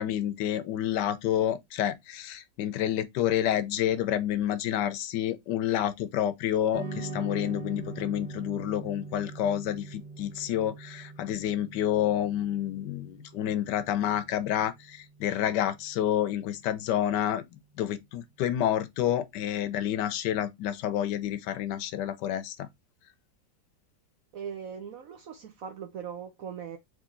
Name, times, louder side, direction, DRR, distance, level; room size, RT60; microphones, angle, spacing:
voice 1, 0.0-17.4 17.8-22.7, left 11 dB, 75° left, 1.1 m, -29 dB
sound 1, 6.7-15.2, right 3 dB, 25° right, 1.4 m, -42 dB
voice 2, 24.3-26.8, right 7 dB, 65° right, 0.9 m, -40 dB
3.8 x 3.1 x 3.7 m
omnidirectional pair, 2.0 m